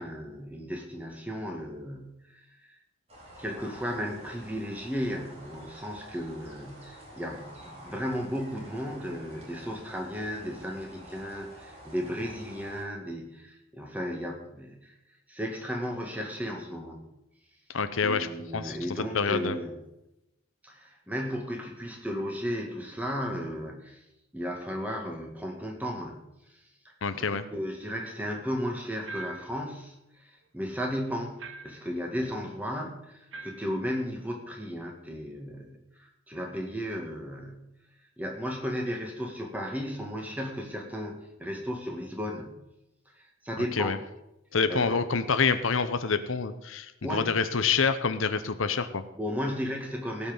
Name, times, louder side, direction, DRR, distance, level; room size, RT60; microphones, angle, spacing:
voice 1, 0.0-2.2 2.6-2.7 3.4-14.9 15.3-17.0 18.0-19.7 20.6-24.0 24.3-26.3 26.9-29.9 30.5-35.8 36.3-37.6 38.2-42.6 43.4-44.0 44.7-45.0 47.0-47.4 49.2-50.3, equal, 10° right, 1 dB, 2.2 m, -34 dB
sound 1, 3.1-12.8, equal, 30° right, 4.1 m, -49 dB
voice 2, 17.7-18.3 18.5-19.6 27.0-27.5 43.6-44.0 44.5-49.0, left 5 dB, 85° left, 11 dB, 0.8 m, -27 dB
sound 2, 29.1-29.6 31.4-31.9 33.3-33.7, right 2 dB, 75° right, 1.2 m, -42 dB
17.5 x 6.0 x 7.2 m, 0.89 s
head